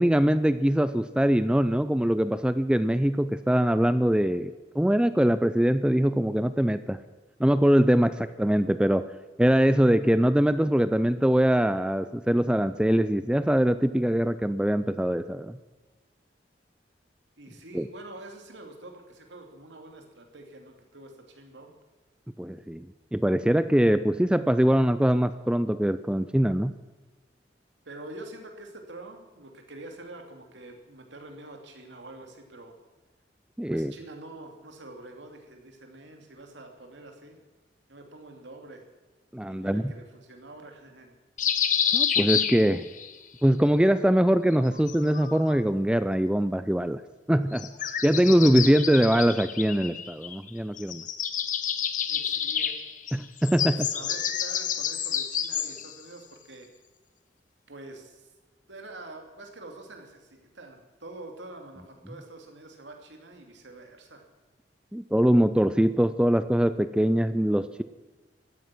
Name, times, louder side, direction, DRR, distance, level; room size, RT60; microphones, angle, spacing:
voice 1, 0.0-7.0 7.4-9.1 9.4-15.6 17.7-17.9 22.4-22.9 23.1-26.8 33.6-33.9 39.3-39.9 41.9-42.9 43.4-47.0 47.3-47.7 48.0-51.0 53.1-53.9 64.9-67.8, equal, 5° right, 13 dB, 0.4 m, -23 dB
voice 2, 17.4-21.7 27.8-32.7 33.7-37.4 37.9-38.8 39.5-41.1 52.1-52.8 53.6-56.7 57.7-58.3 58.7-64.3, right 2 dB, 90° right, 3 dB, 2.8 m, -46 dB
sound 1, 41.4-43.1 44.5-45.6 47.5-50.5 50.8-55.9, left 8 dB, 45° left, 1.1 m, -29 dB
17.0 x 13.5 x 6.1 m, 1.2 s
head